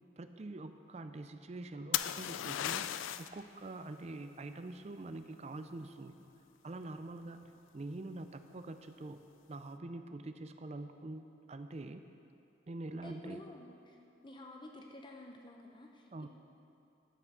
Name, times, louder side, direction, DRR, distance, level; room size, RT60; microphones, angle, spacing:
voice 1, 0.2-6.2 6.6-7.4 7.7-9.2 9.5-12.0 12.7-13.4 16.1-16.3, right 2 dB, 35° right, 9 dB, 0.4 m, -45 dB
sound 1, 1.9-3.4 7.1-7.5, left 11 dB, 80° left, 0.3 m, -35 dB
voice 2, 13.0-14.0 14.2-16.1, left 1 dB, 25° left, 1 dB, 0.6 m, -50 dB
12.5 x 6.0 x 6.7 m, 2.7 s
head